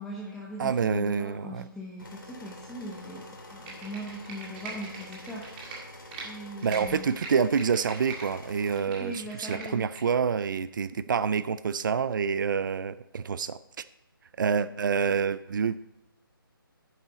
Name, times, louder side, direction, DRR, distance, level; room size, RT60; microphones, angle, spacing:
voice 1, 0.0-5.5 6.2-7.2 9.0-9.9, right 1 dB, 5° left, -5 dB, 0.7 m, -40 dB
voice 2, 0.6-1.7 6.6-13.8 14.4-15.8, right 6 dB, 60° right, 16 dB, 0.4 m, -27 dB
sound 1, 2.0-8.8, left 2 dB, 65° left, 2.6 m, -47 dB
Computer keyboard, 3.5-6.3 6.6-8.3 8.6-10.0 10.4-10.5, right 4 dB, 25° right, 1.8 m, -41 dB
9.4 x 7.5 x 3.9 m, 0.91 s
figure-of-eight pair, 150°, 12 cm